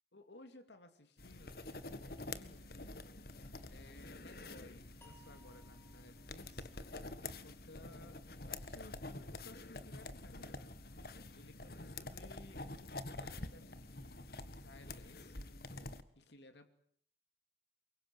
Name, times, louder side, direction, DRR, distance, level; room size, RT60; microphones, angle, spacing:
voice 1, 0.1-2.6 3.7-6.7 7.2-15.4 16.1-16.7, left 2 dB, 85° left, 8 dB, 2.6 m, -59 dB
sound 1, 1.2-16.0, left 2 dB, 55° left, 1.6 m, -48 dB
sound 2, 5.0-8.2, equal, 15° left, 5.6 m, -67 dB
24.0 x 22.5 x 9.4 m, 0.63 s
head